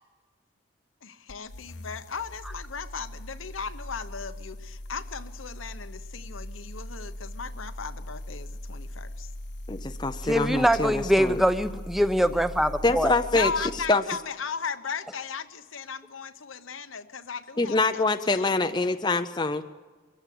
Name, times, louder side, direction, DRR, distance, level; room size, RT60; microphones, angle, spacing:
voice 1, 1.0-9.3 13.3-18.5, left 5 dB, 85° left, 9 dB, 1.0 m, -36 dB
sound 1, 1.3-14.0, left 1 dB, 60° left, 0.9 m, -40 dB
voice 2, 9.7-11.4 12.8-14.0 17.6-19.6, left 3 dB, 20° left, 8 dB, 0.5 m, -25 dB
voice 3, 10.2-13.1, equal, ahead, 10 dB, 0.8 m, -23 dB
24.0 x 15.0 x 8.5 m, 1.4 s
head